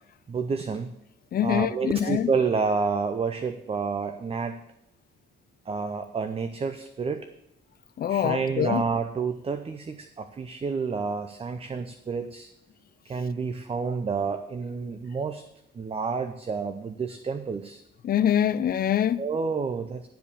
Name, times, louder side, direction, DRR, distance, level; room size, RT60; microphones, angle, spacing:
voice 1, 0.3-0.9 1.4-4.6 5.7-7.3 8.1-12.5 13.1-15.4 15.7-17.8 19.2-20.1, right 5 dB, 30° right, 0.6 m, -29 dB
voice 2, 1.3-2.3 8.0-8.8 18.0-19.2, left 10 dB, 55° left, 0.5 m, -24 dB
11.5 x 5.1 x 6.7 m
cardioid pair, 110°, 18 cm